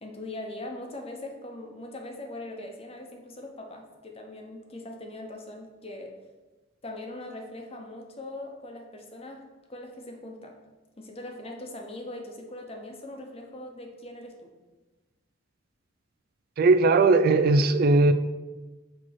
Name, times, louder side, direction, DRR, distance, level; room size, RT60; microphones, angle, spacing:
voice 1, 0.0-6.1 6.8-10.6 11.0-14.5, left 1 dB, 30° left, 2 dB, 0.9 m, -41 dB
voice 2, 16.6-18.1, right 3 dB, 50° right, 10 dB, 0.3 m, -19 dB
6.3 x 3.1 x 5.8 m, 1.2 s
head